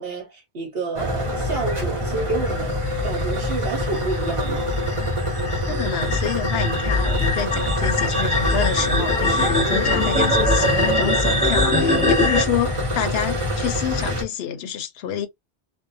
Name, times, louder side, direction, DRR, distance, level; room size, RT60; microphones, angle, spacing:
voice 1, 0.0-4.7, right 3 dB, 65° right, 1.0 m, -29 dB
sound 1, 1.0-14.2, left 1 dB, 35° right, 0.9 m, -25 dB
sound 2, 3.2-12.4, left 2 dB, 5° left, 1.1 m, -22 dB
voice 2, 5.7-15.3, left 8 dB, 80° left, 0.8 m, -28 dB
2.6 x 2.1 x 2.5 m
omnidirectional pair, 1.0 m